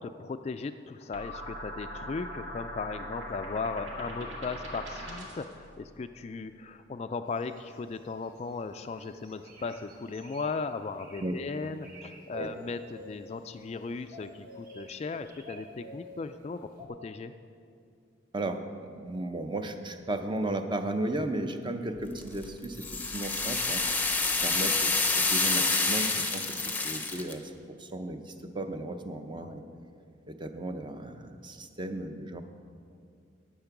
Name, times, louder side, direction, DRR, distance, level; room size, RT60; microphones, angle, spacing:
voice 1, 0.0-17.3 29.4-29.6, left 4 dB, 35° left, 9 dB, 0.3 m, -37 dB
sound 1, 1.1-5.5, equal, 70° right, 2.1 m, -40 dB
sound 2, 7.4-8.6 9.0-10.6 11.0-11.3 11.7-12.2 12.4-13.7 14.1-16.2 16.8-16.9, right 1 dB, 45° right, 1.5 m, -50 dB
voice 2, 18.3-24.1 24.4-29.6 30.3-32.4, right 1 dB, 25° right, 7 dB, 0.6 m, -35 dB
sound 3, 22.2-27.3, left 3 dB, 10° left, 0.7 m, -28 dB
10.5 x 9.1 x 5.9 m, 2.3 s
head